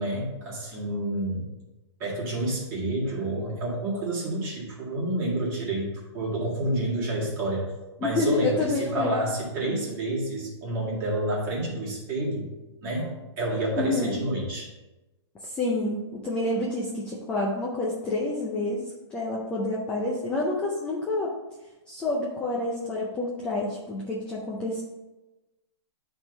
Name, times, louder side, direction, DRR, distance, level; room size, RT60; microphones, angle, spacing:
voice 1, 0.0-1.5 2.0-7.7 8.0-12.5 12.8-14.7, right 1 dB, 20° right, -5 dB, 2.0 m, -29 dB
voice 2, 8.0-9.2 13.8-14.2 15.4-21.3 21.9-24.8, left 2 dB, 5° left, -4 dB, 0.4 m, -28 dB
8.6 x 3.6 x 5.3 m, 1.1 s
hypercardioid pair, 175°, 15 cm